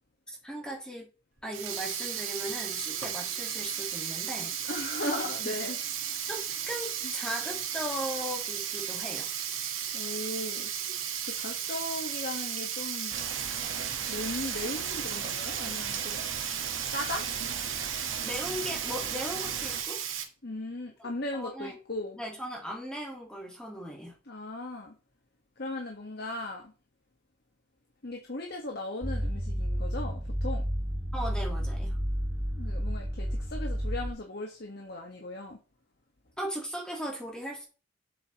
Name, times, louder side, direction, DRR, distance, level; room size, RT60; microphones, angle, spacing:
voice 1, 0.3-1.1 1.4-4.5 5.0-5.2 5.4-5.6 6.3-9.3 18.2-20.0 21.0-21.8 22.2-24.2 31.1-32.0 36.4-37.6, equal, 5° left, 1.6 m, -38 dB
Sink (filling or washing), 1.4-20.2, right 9 dB, 90° right, 1.6 m, -35 dB
voice 2, 4.6-5.8 9.9-10.7 11.2-13.2 14.1-16.2 16.9-17.2 20.4-22.2 24.3-24.9 25.6-26.7 28.0-30.6 32.6-35.6, left 2 dB, 55° left, 1.3 m, -37 dB
sound 1, 13.1-19.8, right 6 dB, 65° right, 1.4 m, -39 dB
sound 2, 29.0-34.1, equal, 20° right, 1.7 m, -31 dB
7.8 x 7.4 x 3.0 m
head